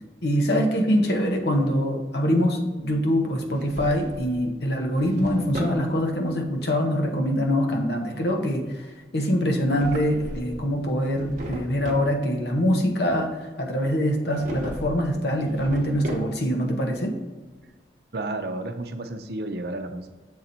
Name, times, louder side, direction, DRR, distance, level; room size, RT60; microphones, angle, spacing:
voice 1, 0.2-8.9 9.1-17.2, equal, 65° left, 3 dB, 1.0 m, -24 dB
Drawer open or close, 3.4-4.4 4.8-5.8 9.5-10.6 11.0-12.1 14.3-15.0 15.3-16.6, right 1 dB, 45° right, 1.0 m, -36 dB
voice 2, 18.1-20.1, right 2 dB, 60° right, 6 dB, 0.6 m, -31 dB
6.8 x 4.0 x 4.2 m, 1.3 s
head